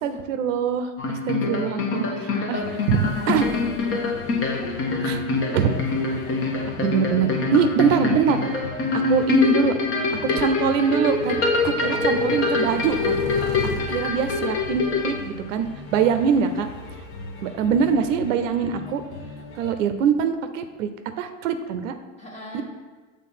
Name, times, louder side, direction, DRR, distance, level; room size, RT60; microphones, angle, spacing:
voice 1, 0.0-2.0 2.5-2.6 2.9-3.5 5.0-5.2 5.5-5.7 6.8-8.5 8.9-9.7 10.2-13.1 13.9-15.1 15.5-15.7 15.9-16.7 17.4-19.0 19.6-20.9 21.2-22.0 22.5-22.6, right 6 dB, 70° right, 8 dB, 0.7 m, -23 dB
sound 1, 1.0-15.1, left 3 dB, 35° left, 0.9 m, -25 dB
voice 2, 1.9-2.5 3.0-3.4 3.7-4.1 4.3-4.7 11.8-12.0 22.2-22.6, left 1 dB, 15° left, -1 dB, 1.3 m, -41 dB
sound 2, 2.5-19.7, left 2 dB, 60° left, 1.2 m, -37 dB
6.5 x 3.5 x 5.6 m, 1.4 s
supercardioid pair, 125°, 40 cm